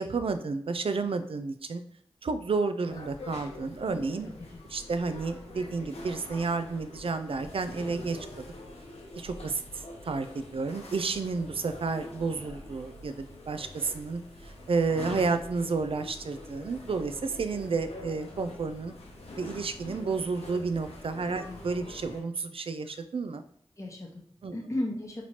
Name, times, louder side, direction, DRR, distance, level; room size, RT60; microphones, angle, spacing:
voice 1, 0.0-1.8 2.2-4.3 4.7-8.5 9.2-18.9 19.4-23.4 24.4-24.6, right 4 dB, 65° right, 10 dB, 0.4 m, -31 dB
sound 1, 2.9-22.2, left 1 dB, 90° left, 0.7 m, -45 dB
voice 2, 4.2-4.6 21.3-21.6 23.8-24.2 24.5-25.2, left 1 dB, 30° left, 0 dB, 0.9 m, -35 dB
4.1 x 3.0 x 2.9 m, 0.66 s
cardioid pair, 40°, 10 cm